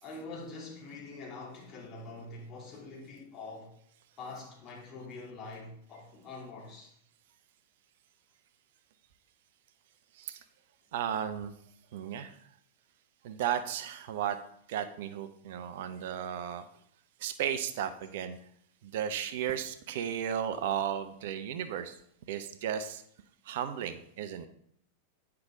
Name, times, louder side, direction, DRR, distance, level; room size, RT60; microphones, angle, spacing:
voice 1, 0.0-3.7 4.2-6.9, left 3 dB, 30° left, 3.0 m, -45 dB
voice 2, 10.9-11.6 11.9-12.5 13.2-14.4 14.7-16.6 17.2-18.4 18.8-22.0 22.3-23.0 23.4-24.5, right 9 dB, 55° right, 0.6 m, -34 dB
9.6 x 5.8 x 3.7 m
figure-of-eight pair, 90°, 0 cm